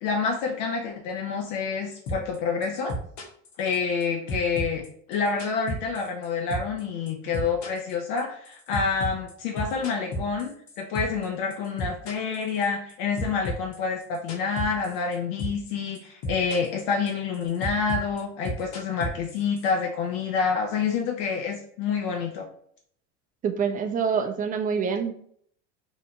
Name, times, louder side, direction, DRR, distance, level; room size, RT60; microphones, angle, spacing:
voice 1, 0.0-2.9 3.6-4.8 5.1-22.5, left 5 dB, 70° left, 2 dB, 0.5 m, -28 dB
sound 1, 2.1-2.4 2.6-4.0 4.3-6.3 6.5-6.8 7.1-11.3 11.5-12.9 13.2-15.1 15.4-15.7 15.9-16.8 17.1-19.7, equal, 50° left, 0.9 m, -32 dB
voice 2, 23.4-25.1, right 6 dB, 25° right, 6 dB, 0.4 m, -26 dB
2.6 x 2.1 x 2.8 m, 0.63 s
hypercardioid pair, 85°, 37 cm